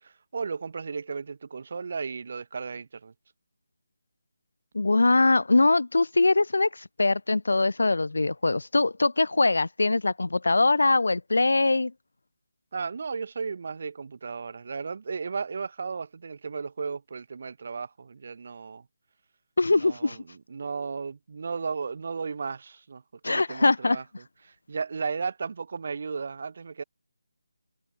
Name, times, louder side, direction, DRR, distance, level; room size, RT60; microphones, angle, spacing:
voice 1, 0.0-3.1 12.7-18.8 19.7-26.8, right 5 dB, 50° right, 1.4 m, -35 dB
voice 2, 4.7-11.9 19.6-20.2 23.2-24.0, left 3 dB, 80° left, 0.5 m, -22 dB
figure-of-eight pair, 165°, 0 cm